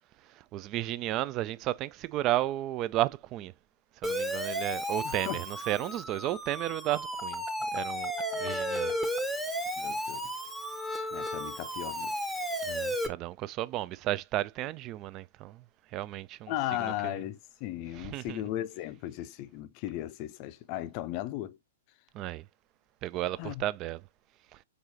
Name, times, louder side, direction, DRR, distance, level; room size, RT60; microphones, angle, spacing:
voice 1, 0.3-3.5 4.0-7.4 7.7-8.9 12.7-15.6 15.9-16.5 16.8-17.2 17.9-18.4 22.1-22.5 23.0-24.0, right 15 dB, 35° right, 0.3 m, -33 dB
Siren, 4.0-13.1, equal, 5° right, 0.8 m, -33 dB
voice 2, 5.0-5.4 9.8-10.3 11.1-12.2 16.5-21.6 23.4-23.6, left 14 dB, 40° left, 0.5 m, -36 dB
4.7 x 3.9 x 2.7 m
hypercardioid pair, 115°, 0 cm